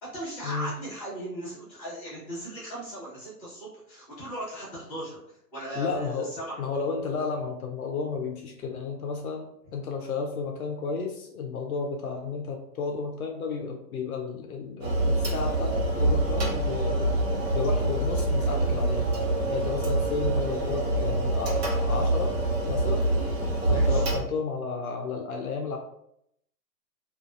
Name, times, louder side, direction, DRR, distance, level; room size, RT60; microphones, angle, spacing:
voice 1, 0.0-6.6 23.7-24.1, right 1 dB, 5° left, -15 dB, 0.7 m, -38 dB
voice 2, 5.8-6.3 6.6-17.2 17.5-19.1 19.5-22.3 22.7-23.0 23.7-25.8, left 4 dB, 60° left, 3 dB, 0.5 m, -32 dB
sound 1, 14.8-24.2, right 1 dB, 70° right, 1.1 m, -25 dB
2.5 x 2.4 x 2.4 m, 0.75 s
hypercardioid pair, 160°, 49 cm